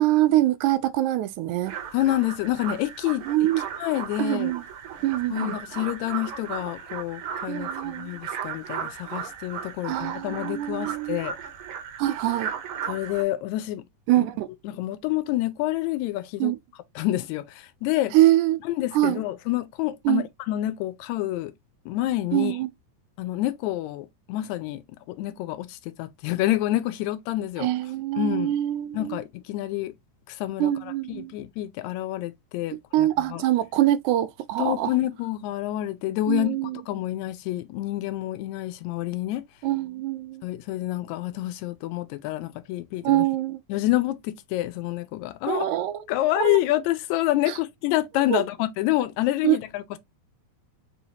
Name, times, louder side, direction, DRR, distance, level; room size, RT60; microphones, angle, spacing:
voice 1, 0.0-1.7 3.3-3.6 4.2-4.7 5.0-5.6 7.5-8.1 9.8-11.2 12.0-12.5 14.1-14.5 16.4-16.6 18.1-18.6 18.9-19.2 20.1-20.2 22.3-22.7 27.6-29.2 30.6-31.3 32.9-35.0 36.3-36.8 39.6-40.5 43.0-43.6 45.5-46.0 46.4-46.6 47.5-47.6 48.3-48.5 49.4-49.6, right 14 dB, 85° right, 2.0 m, -24 dB
sound 1, 1.6-13.2, right 7 dB, 70° right, 1.3 m, -36 dB
voice 2, 1.9-3.3 3.8-4.5 5.3-11.3 12.9-13.8 14.2-14.3 14.6-16.5 17.0-17.5 17.8-18.1 18.8-21.5 21.9-22.5 23.2-24.8 25.2-27.7 28.2-28.5 28.9-29.9 30.3-30.7 31.1-33.4 34.6-39.4 40.4-43.2 43.7-45.7 46.1-50.0, left 15 dB, 80° left, 1.9 m, -28 dB
4.8 x 2.8 x 2.8 m
omnidirectional pair, 3.4 m